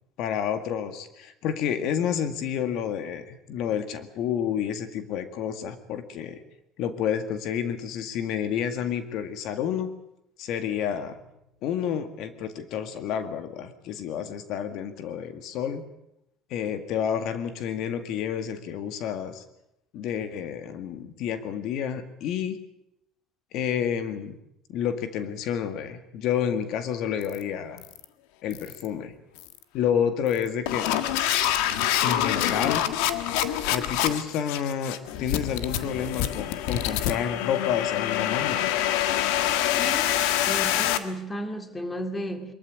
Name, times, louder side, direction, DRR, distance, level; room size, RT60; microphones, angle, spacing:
voice 1, 0.2-6.4 6.8-9.9 10.4-11.2 11.6-15.8 16.5-19.4 19.9-22.6 23.5-24.4 24.7-27.8 28.4-29.1 29.7-31.0 32.0-32.8 33.7-38.7, left 8 dB, 65° left, 2.0 m, -29 dB
sound 1, 27.2-27.4 27.8-28.0 28.5-28.9 29.4-29.6 30.3-41.0, left 11 dB, 90° left, 1.6 m, -26 dB
voice 2, 39.8-42.5, equal, 15° left, 2.2 m, -34 dB
23.0 x 14.5 x 9.9 m
cardioid pair, 140°, 0 cm